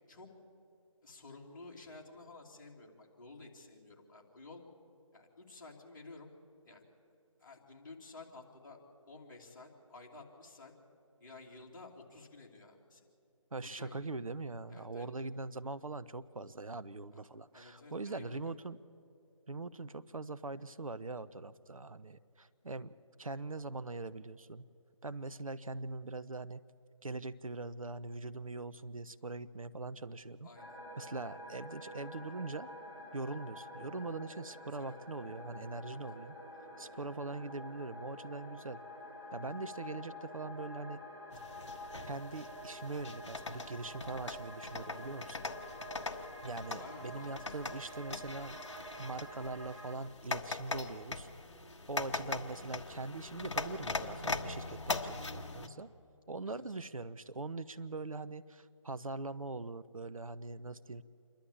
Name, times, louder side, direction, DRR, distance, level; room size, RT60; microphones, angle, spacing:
voice 1, 1.0-4.6 5.1-6.3 6.6-6.9 7.4-8.8 9.1-10.7 11.2-13.0 13.6-14.1 14.7-15.1 17.1-17.2 17.5-18.5 30.4-30.8 34.7-35.0 36.1-36.3 46.8-47.3 47.6-48.1 56.4-56.6, left 3 dB, 35° left, -2 dB, 2.9 m, -53 dB
voice 2, 13.5-18.8 19.5-24.6 25.0-26.6 27.0-30.5 31.0-32.7 33.1-36.4 36.8-38.8 39.3-41.0 42.0-45.4 46.4-51.3 51.9-55.9 56.3-61.0, right 3 dB, 80° right, 14 dB, 0.8 m, -42 dB
sound 1, 30.6-50.0, equal, 50° right, 4.5 m, -48 dB
sound 2, 41.3-55.7, left 3 dB, 60° left, 1.3 m, -41 dB
27.5 x 11.5 x 8.6 m, 2.7 s
figure-of-eight pair, 160°, 17 cm